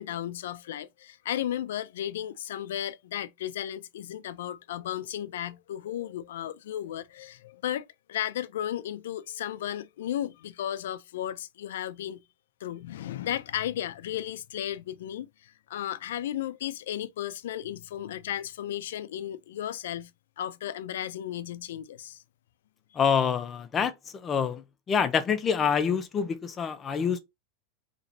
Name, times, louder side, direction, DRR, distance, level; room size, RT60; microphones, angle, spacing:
voice 1, 0.0-12.2 12.6-20.1 20.4-22.2, left 11 dB, 80° left, 0.4 m, -34 dB
voice 2, 23.0-23.9 24.2-24.6 24.9-27.2, left 7 dB, 20° left, 0.5 m, -26 dB
4.1 x 3.0 x 2.6 m
supercardioid pair, 150°, 0 cm